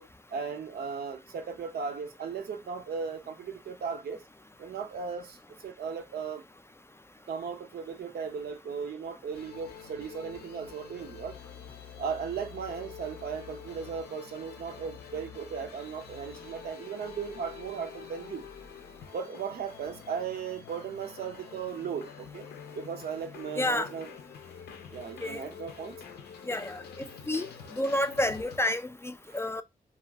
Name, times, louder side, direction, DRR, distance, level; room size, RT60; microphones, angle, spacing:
voice 1, 0.0-4.2 4.6-6.4 7.3-11.4 12.0-18.4 19.1-22.5 22.7-24.1 24.9-26.0 27.6-27.8 29.3-29.4, right 6 dB, 80° right, 0.6 m, -37 dB
sound 1, 9.3-28.6, left 7 dB, 90° left, 0.5 m, -47 dB
voice 2, 23.6-23.9 25.2-25.4 26.5-27.5 27.8-29.6, left 1 dB, 15° left, 0.3 m, -30 dB
2.3 x 2.2 x 3.3 m
cardioid pair, 50°, 16 cm